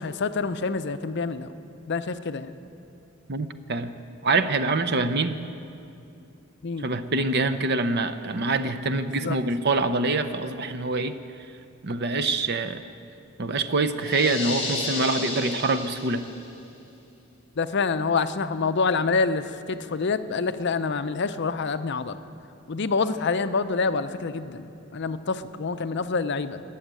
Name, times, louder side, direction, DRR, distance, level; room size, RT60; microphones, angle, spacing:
voice 1, 0.0-1.5 1.9-2.5 6.6-6.8 9.2-9.4 17.6-22.2 22.7-26.6, left 4 dB, 55° left, 11 dB, 0.6 m, -27 dB
voice 2, 3.3-3.9 4.2-5.4 6.8-11.2 11.8-12.8 13.4-16.2, right 3 dB, 50° right, 10 dB, 0.7 m, -25 dB
sound 1, 14.0-16.5, left 2 dB, 25° left, 3.7 m, -32 dB
20.5 x 7.2 x 9.0 m, 2.6 s
head